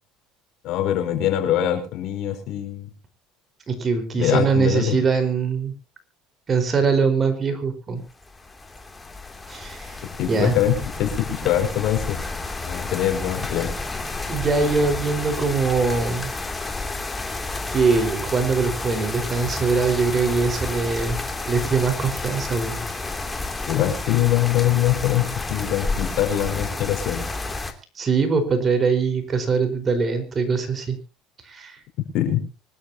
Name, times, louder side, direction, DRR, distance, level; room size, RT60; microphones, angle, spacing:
voice 1, 0.6-2.9 4.2-5.0 10.2-12.2 12.7-13.7 23.7-27.2 32.1-32.4, left 12 dB, 65° left, 5 dB, 5.3 m, -23 dB
voice 2, 3.7-5.7 6.5-8.0 9.5-10.5 14.3-16.3 17.7-21.2 21.5-22.8 28.0-31.0 31.4-31.8, right 4 dB, 30° right, 8 dB, 4.6 m, -22 dB
sound 1, 8.2-27.7, left 3 dB, 15° left, 2.8 m, -31 dB
24.5 x 13.0 x 2.8 m, 0.32 s
supercardioid pair, 105°, 0 cm